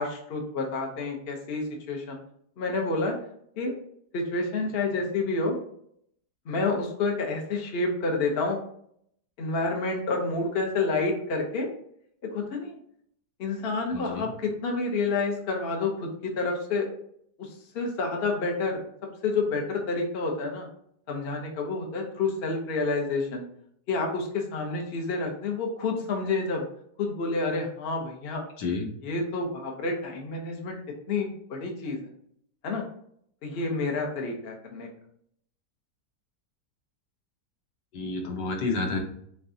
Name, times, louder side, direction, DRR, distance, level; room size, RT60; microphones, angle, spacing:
voice 1, 0.0-2.2 2.6-3.2 3.6-3.7 4.1-5.6 6.5-8.6 9.4-11.7 12.3-12.7 13.4-16.9 17.4-17.5 17.7-18.8 19.2-20.7 21.1-23.4 23.9-26.7 27.0-28.4 29.0-30.8 31.1-32.0 32.6-32.8 33.4-34.9, left 3 dB, 45° left, 1 dB, 0.9 m, -29 dB
voice 2, 13.9-14.3 28.6-28.9 37.9-39.0, left 3 dB, 75° left, 1 dB, 1.6 m, -30 dB
6.9 x 2.4 x 2.7 m, 0.67 s
omnidirectional pair, 1.9 m